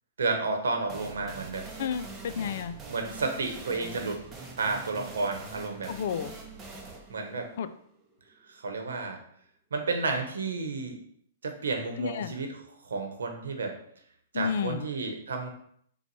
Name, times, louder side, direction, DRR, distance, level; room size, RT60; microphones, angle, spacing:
voice 1, 0.2-1.7 2.9-4.2 4.6-5.9 7.1-7.5 8.4-9.2 9.7-11.0 11.4-13.8 14.3-15.5, right 3 dB, 80° right, 3 dB, 0.9 m, -31 dB
sound 1, 0.9-8.4, right 3 dB, 20° right, 0.7 m, -44 dB
voice 2, 1.8-2.8 5.9-6.3 7.6-7.7 12.0-12.3 14.3-14.9, left 7 dB, 65° left, 12 dB, 0.3 m, -31 dB
4.0 x 2.3 x 4.6 m, 0.66 s
hypercardioid pair, 130°, 0 cm